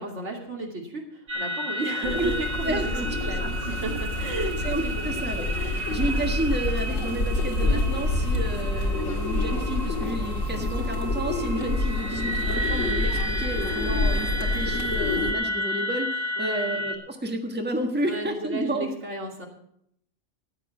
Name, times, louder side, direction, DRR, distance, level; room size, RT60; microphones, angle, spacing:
voice 1, 0.0-2.9 3.2-4.5 4.8-5.3 5.5-6.1 12.2-12.3 16.4-16.7 18.0-19.5, right 3 dB, 65° right, -1 dB, 3.0 m, -34 dB
sound 1, 1.3-16.9, equal, 50° right, 2.1 m, -33 dB
sound 2, 2.0-15.3, left 2 dB, 75° left, 2.4 m, -27 dB
voice 2, 2.6-3.1 3.4-3.5 4.6-5.5 5.9-18.9, right 1 dB, 10° right, 3 dB, 1.4 m, -31 dB
13.0 x 9.7 x 6.1 m, 0.71 s
omnidirectional pair, 1.3 m